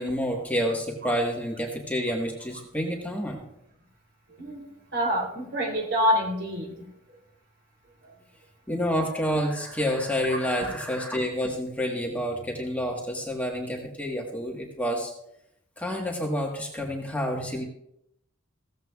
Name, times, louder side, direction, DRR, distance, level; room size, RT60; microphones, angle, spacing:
voice 1, 0.0-3.4 8.7-15.1 15.8-17.6, equal, 5° left, -1 dB, 1.4 m, -28 dB
voice 2, 4.9-6.7, equal, 55° right, 1 dB, 3.2 m, -26 dB
16.0 x 14.5 x 2.4 m, 0.78 s
head